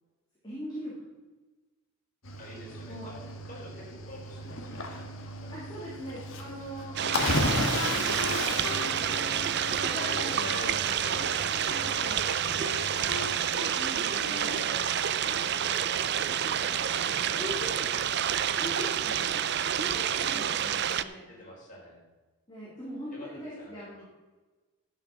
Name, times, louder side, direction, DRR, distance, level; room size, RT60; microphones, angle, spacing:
voice 1, 0.4-1.1 2.9-3.1 5.5-9.4 9.8-11.1 11.6-12.3 13.1-13.3 13.6-14.7 15.0-15.2 17.4-17.6 18.6-19.5 19.8-21.3 22.5-24.0, equal, 20° left, -8 dB, 3.6 m, -42 dB
Cricket / Waves surf, 2.2-13.5, left 2 dB, 60° left, 1.5 m, -35 dB
voice 2, 2.4-5.5 5.9-6.9 9.0-9.9 11.2-12.0 14.4-14.9 15.2-18.1 18.7-19.3 20.2-20.3 21.3-22.0 23.1-24.0, equal, 35° left, -3 dB, 4.4 m, -49 dB
sound 1, 7.0-21.0, right 9 dB, 50° right, 0.5 m, -29 dB
Wind instrument woodwind instrument, 7.3-10.7 11.0-12.2 12.6-13.9 14.2-14.7, left 5 dB, 75° left, 0.7 m, -40 dB
12.5 x 6.9 x 6.3 m, 1.2 s
head